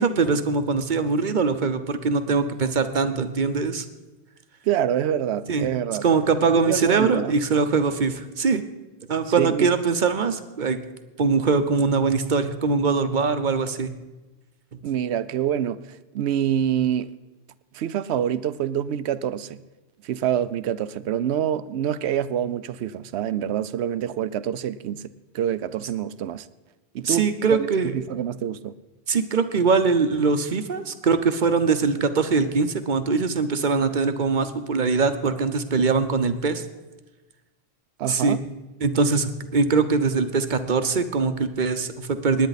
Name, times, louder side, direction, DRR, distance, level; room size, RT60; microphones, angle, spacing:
voice 1, 0.0-3.8 5.5-5.7 6.0-8.6 9.1-10.8 11.2-13.9 27.0-27.9 29.1-36.6 38.1-38.4 38.8-42.5, right 4 dB, 50° right, 0.9 m, -22 dB
voice 2, 4.7-6.0 6.6-7.4 9.4-9.7 14.8-17.1 17.7-19.6 20.0-25.1 25.3-26.5 26.9-27.7 27.9-28.8 38.0-38.4, right 10 dB, 80° right, 0.8 m, -26 dB
18.5 x 9.8 x 4.1 m
omnidirectional pair, 1.1 m